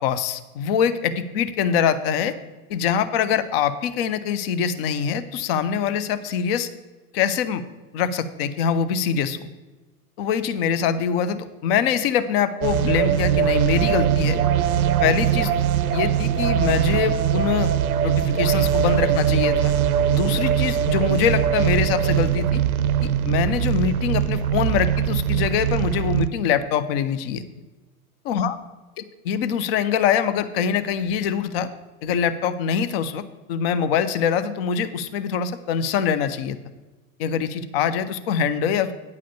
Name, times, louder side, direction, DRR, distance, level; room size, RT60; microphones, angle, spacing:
voice 1, 0.0-2.3 2.7-6.7 7.1-7.6 7.9-9.5 10.2-14.4 15.0-15.5 15.9-17.7 18.0-19.7 20.1-22.6 23.0-27.4 28.2-28.6 29.2-31.7 32.0-36.6 37.2-38.9, left 7 dB, 40° left, 12 dB, 0.6 m, -24 dB
sound 1, 12.6-26.3, right 9 dB, 70° right, 0.5 m, -21 dB
9.4 x 5.0 x 6.8 m, 1.2 s
figure-of-eight pair, 90°, 44 cm